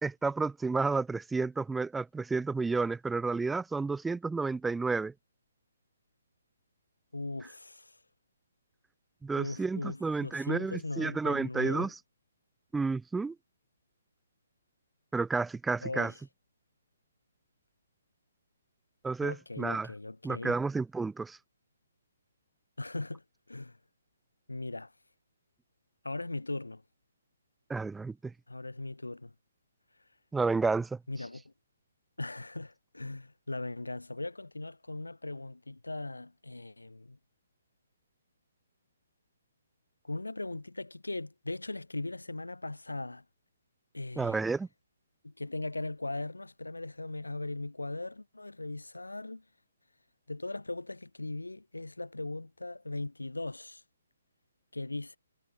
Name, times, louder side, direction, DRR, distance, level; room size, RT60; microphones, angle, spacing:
voice 1, 0.0-5.1 9.2-11.9 12.7-13.4 15.1-16.1 19.0-19.9 20.2-21.4 27.7-28.3 30.3-31.0 44.2-44.7, right 4 dB, 5° right, 0.4 m, -31 dB
voice 2, 7.1-8.0 9.4-11.9 15.8-16.1 19.2-20.6 22.8-23.8 24.5-24.9 26.0-26.8 28.5-29.3 31.1-31.5 32.2-37.2 40.0-43.2 43.9-44.4 45.2-49.4 50.3-53.8 54.7-55.2, left 2 dB, 90° left, 2.5 m, -39 dB
figure-of-eight pair, 140°, 0 cm